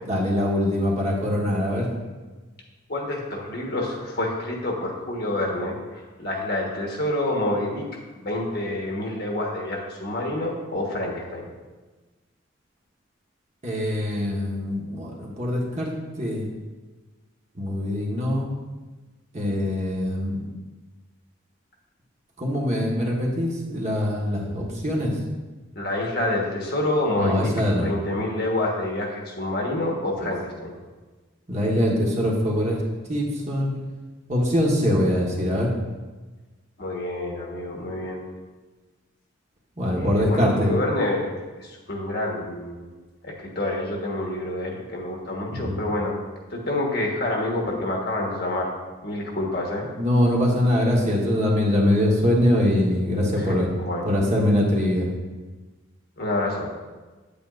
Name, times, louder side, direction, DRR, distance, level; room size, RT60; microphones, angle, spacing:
voice 1, 0.0-1.9 13.6-16.5 17.6-18.5 19.3-20.5 22.4-25.2 27.1-27.9 30.2-30.3 31.5-32.8 33.1-33.7 34.3-35.7 39.8-40.8 45.5-45.8 50.0-53.7 54.0-55.1, left 1 dB, 35° right, -2 dB, 1.3 m, -23 dB
voice 2, 2.9-7.9 8.1-11.4 25.7-27.5 27.8-30.8 36.8-38.2 40.0-41.3 41.6-42.8 43.2-46.2 46.5-48.7 49.0-49.9 53.4-54.1 56.2-56.7, left 1 dB, 50° left, -1 dB, 1.3 m, -28 dB
8.8 x 8.5 x 2.5 m, 1.3 s
head